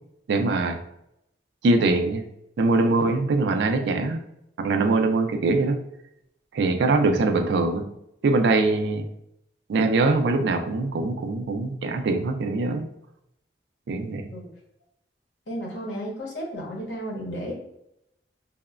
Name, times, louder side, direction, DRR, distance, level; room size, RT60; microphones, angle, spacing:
voice 1, 0.3-0.8 1.6-2.2 2.6-4.2 4.6-5.8 6.5-7.9 8.2-9.0 9.7-12.9 13.9-14.3, right 3 dB, 70° right, 6 dB, 0.3 m, -22 dB
voice 2, 15.5-17.5, equal, 75° left, -2 dB, 0.9 m, -33 dB
2.9 x 2.0 x 2.4 m, 0.80 s
head